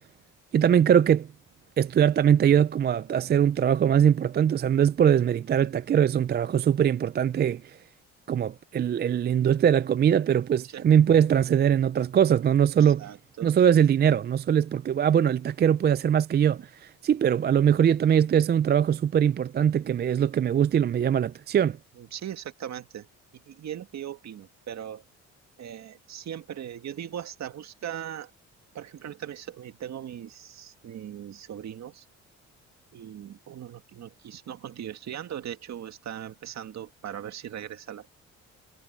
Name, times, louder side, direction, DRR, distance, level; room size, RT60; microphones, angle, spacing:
voice 1, 0.5-1.3 1.8-7.8 8.3-13.1 13.4-21.8, right 9 dB, 35° right, 0.4 m, -22 dB
voice 2, 12.7-13.5 22.0-23.1 23.3-25.0 25.6-28.3 28.7-32.0 32.9-38.1, right 10 dB, 60° right, 2.1 m, -39 dB
cardioid pair, 90°, 30 cm